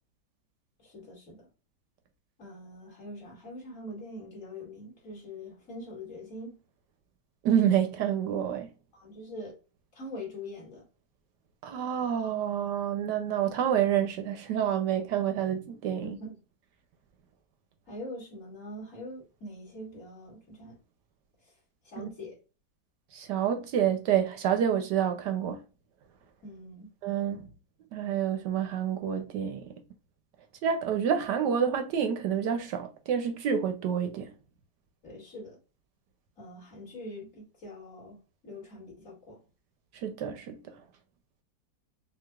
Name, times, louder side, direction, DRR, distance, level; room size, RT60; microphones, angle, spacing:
voice 1, 0.8-1.5 2.4-6.6 8.9-9.5 9.9-10.8 16.0-16.4 17.9-20.8 21.8-22.3 26.4-26.9 35.0-35.6 36.4-39.4, left 1 dB, 40° left, 2.7 m, -43 dB
voice 2, 7.4-8.7 11.6-16.1 22.0-22.1 23.1-25.6 27.0-27.5 27.9-29.8 30.6-34.3 39.9-40.8, right 9 dB, 70° right, 1.1 m, -28 dB
5.8 x 2.8 x 2.3 m
omnidirectional pair, 2.2 m